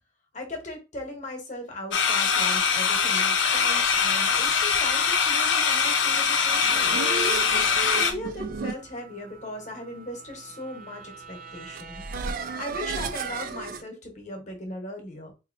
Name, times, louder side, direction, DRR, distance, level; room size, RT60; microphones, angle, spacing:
voice 1, 0.3-7.1 7.9-12.0 12.6-15.3, left 1 dB, 40° left, 4 dB, 1.1 m, -38 dB
sound 1, 1.9-8.1, left 6 dB, 80° left, 0.7 m, -23 dB
sound 2, 6.3-13.8, right 4 dB, 50° right, 0.4 m, -35 dB
4.1 x 2.7 x 2.6 m, 0.28 s
head